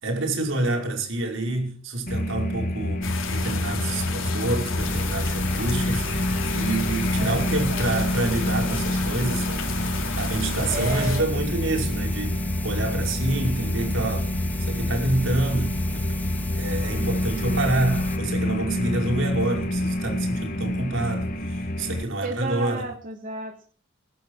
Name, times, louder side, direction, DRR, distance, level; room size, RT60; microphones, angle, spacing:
voice 1, 0.0-6.1 6.5-9.6 10.2-12.4 12.6-14.3 14.6-16.0 16.5-22.8, right 2 dB, 75° right, 5.3 m, -27 dB
sound 1, 2.1-22.0, left 1 dB, 45° left, 1.6 m, -28 dB
sound 2, 3.0-11.2, left 4 dB, 80° left, 4.3 m, -32 dB
sound 3, 4.8-18.2, equal, 10° left, 2.0 m, -33 dB
voice 2, 7.2-8.2 10.7-11.3 22.2-23.6, right 3 dB, 45° right, 2.6 m, -33 dB
23.5 x 11.5 x 4.8 m
head